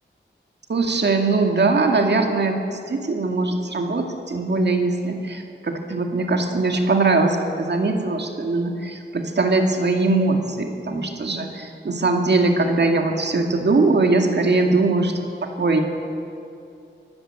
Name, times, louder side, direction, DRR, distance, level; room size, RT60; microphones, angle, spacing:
voice 1, 0.7-15.8, right 3 dB, 60° right, 3 dB, 2.1 m, -21 dB
24.0 x 15.5 x 8.9 m, 2.6 s
wide cardioid pair, 115°, 20 cm